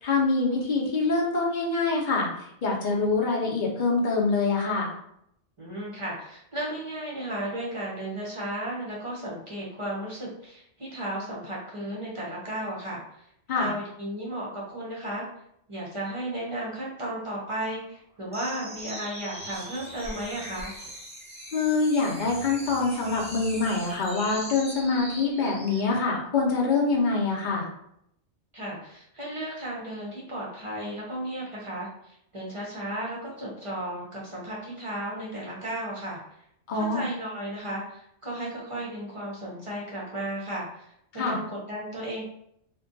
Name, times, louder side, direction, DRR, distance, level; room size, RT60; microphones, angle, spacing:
voice 1, 0.0-2.3 2.6-4.9 13.5-13.7 21.5-27.7 36.7-37.0 41.2-41.4, left 3 dB, 55° left, -1 dB, 0.6 m, -25 dB
voice 2, 5.6-13.2 13.6-15.2 15.7-20.8 28.5-36.2 36.7-42.2, right 1 dB, 40° right, -6 dB, 0.5 m, -34 dB
sound 1, 18.3-25.9, equal, 5° right, 0.7 m, -41 dB
2.5 x 2.2 x 2.5 m, 0.74 s
omnidirectional pair, 1.2 m